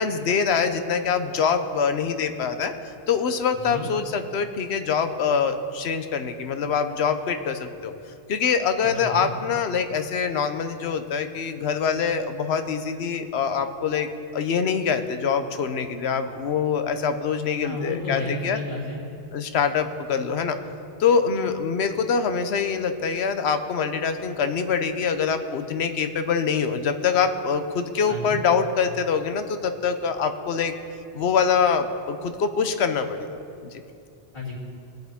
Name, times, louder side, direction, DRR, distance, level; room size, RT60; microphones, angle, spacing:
voice 1, 0.0-2.7 3.1-7.9 8.3-18.6 19.3-20.6 21.0-30.7 31.1-33.8, left 6 dB, 85° left, 8 dB, 1.0 m, -24 dB
voice 2, 3.5-3.9 8.8-9.3 17.6-19.0 28.1-28.4 34.3-34.5, left 1 dB, 50° left, -9 dB, 3.2 m, -32 dB
20.0 x 7.8 x 3.6 m, 2.6 s
omnidirectional pair, 1.1 m